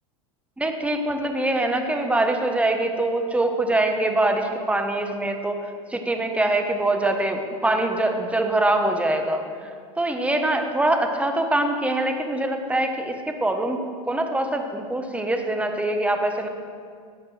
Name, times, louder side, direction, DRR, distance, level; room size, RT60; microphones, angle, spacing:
voice 1, 0.6-5.6 5.9-9.4 10.0-13.8 14.1-16.5, right 2 dB, 5° right, 5 dB, 1.1 m, -23 dB
15.0 x 8.5 x 3.3 m, 2.1 s
hypercardioid pair, 95°, 18 cm